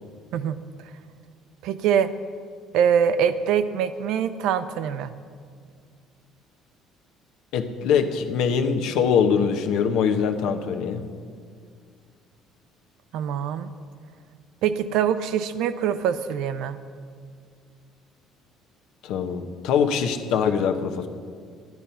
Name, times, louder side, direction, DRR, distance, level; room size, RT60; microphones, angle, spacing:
voice 1, 1.6-2.1 2.7-5.1 13.1-13.7 14.6-16.8, right 8 dB, 75° right, 12 dB, 0.6 m, -23 dB
voice 2, 7.5-11.0 19.0-21.1, left 7 dB, 75° left, 6 dB, 1.0 m, -23 dB
12.0 x 11.0 x 5.6 m, 2.1 s
cardioid pair, 140°, 0 cm